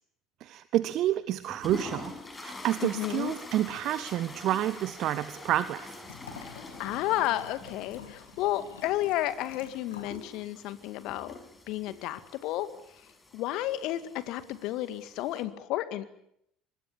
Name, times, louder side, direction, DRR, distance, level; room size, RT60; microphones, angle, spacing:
voice 1, 0.4-5.9, right 13 dB, 50° right, 15 dB, 1.0 m, -29 dB
sound 1, 1.4-15.4, left 2 dB, 20° left, 6.4 m, -46 dB
voice 2, 2.8-3.3 6.4-11.4 11.7-12.7 13.3-16.1, left 14 dB, 55° left, 13 dB, 2.0 m, -32 dB
Liquid, 6.0-10.3 10.6-10.7, left 8 dB, 70° left, 2.8 m, -48 dB
25.0 x 21.5 x 8.6 m, 0.74 s
figure-of-eight pair, 60°, 0 cm